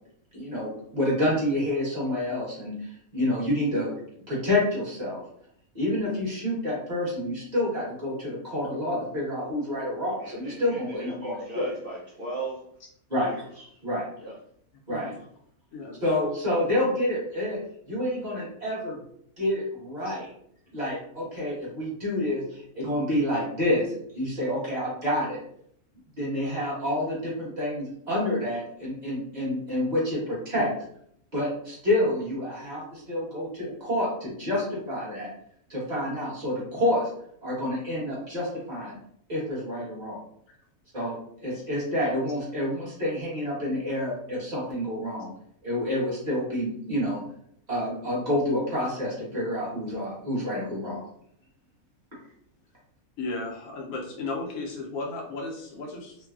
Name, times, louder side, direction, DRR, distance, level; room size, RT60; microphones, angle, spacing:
voice 1, 0.3-3.9 4.3-5.2 5.7-11.7 13.1-13.3 13.8-14.0 14.9-15.1 16.0-17.6 17.9-19.0 19.4-20.3 20.7-25.4 26.2-30.7 31.3-35.3 35.7-37.1 37.4-39.0 39.3-40.2 40.9-45.3 45.6-47.2 47.7-51.0, left 1 dB, 30° right, -7 dB, 1.2 m, -28 dB
voice 2, 10.2-12.6 13.2-13.8 14.2-14.4, right 2 dB, 80° right, -4 dB, 0.5 m, -38 dB
voice 3, 53.2-56.2, left 3 dB, 70° left, -1 dB, 1.0 m, -35 dB
3.2 x 2.2 x 2.3 m, 0.67 s
omnidirectional pair, 1.6 m